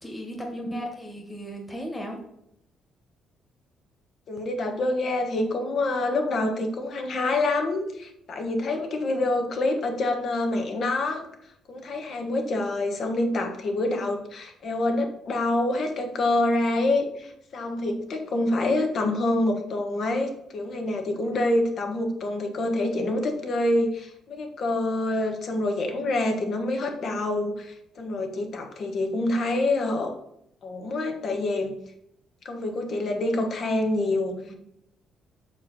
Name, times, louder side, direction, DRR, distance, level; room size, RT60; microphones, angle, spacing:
voice 1, 0.0-2.2 34.5-34.6, equal, 10° left, 0 dB, 1.6 m, -36 dB
voice 2, 4.3-11.3 11.7-30.1 30.6-31.7 32.4-34.4, left 2 dB, 55° left, 4 dB, 1.5 m, -26 dB
6.2 x 4.9 x 6.2 m, 0.78 s
cardioid pair, 110°, 0 cm